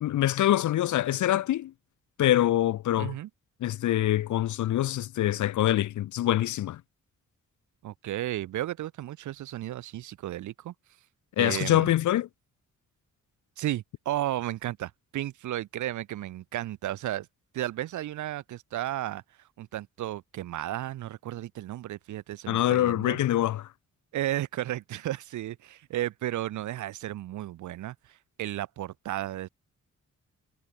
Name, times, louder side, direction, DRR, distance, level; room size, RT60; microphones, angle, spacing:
voice 1, 0.0-1.7 2.2-3.1 3.6-6.8 11.4-12.3 22.5-23.7, left 13 dB, 70° left, 0.6 m, -25 dB
voice 2, 3.0-3.3 7.8-10.7 11.4-11.9 13.6-17.3 17.5-19.2 19.6-23.2 24.1-29.5, right 13 dB, 70° right, 0.6 m, -34 dB
wide cardioid pair, 175°, 31 cm